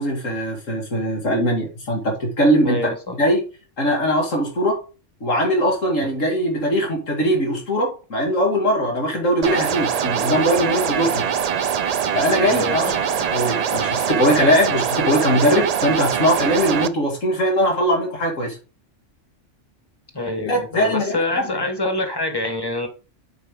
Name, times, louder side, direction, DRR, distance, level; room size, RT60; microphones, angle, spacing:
voice 1, 0.0-2.9 3.2-3.4 3.8-4.8 5.2-11.3 12.1-13.0 13.3-18.6 20.4-21.4, equal, 85° left, 0 dB, 2.8 m, -20 dB
voice 2, 2.6-3.1 12.5-13.0 20.1-22.9, left 2 dB, 20° left, 6 dB, 1.3 m, -26 dB
sound 1, 9.4-16.9, right 7 dB, 75° right, 0.3 m, -23 dB
7.4 x 5.5 x 3.8 m, 0.33 s
omnidirectional pair, 1.3 m